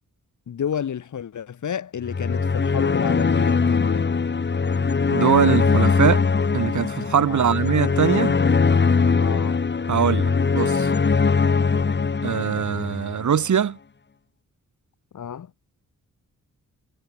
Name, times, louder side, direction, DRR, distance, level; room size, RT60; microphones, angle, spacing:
voice 1, 0.5-4.1 7.3-7.6 9.2-9.6 15.1-15.5, left 8 dB, 70° left, 3.6 m, -30 dB
sound 1, 2.0-13.4, left 5 dB, 35° left, 4.5 m, -21 dB
voice 2, 5.1-6.3 6.5-8.4 9.9-10.9 12.2-13.8, right 8 dB, 65° right, 4.8 m, -22 dB
wide cardioid pair, 145°, 31 cm